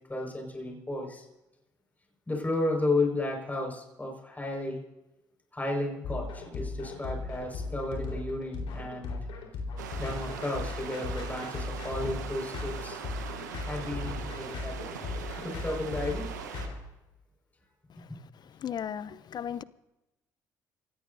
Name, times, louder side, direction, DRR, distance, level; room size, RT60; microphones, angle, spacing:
voice 1, 0.1-1.3 2.3-4.8 5.5-9.2 10.0-13.0 13.7-14.9 15.4-16.3, left 2 dB, 20° left, 5.4 m, -33 dB
sound 1, 6.0-16.7, left 3 dB, 65° left, 4.3 m, -37 dB
sound 2, 9.8-16.7, right 7 dB, 90° right, 1.1 m, -41 dB
voice 2, 18.6-19.6, left 9 dB, 50° left, 0.7 m, -35 dB
25.0 x 17.5 x 2.7 m
hypercardioid pair, 50°, 9 cm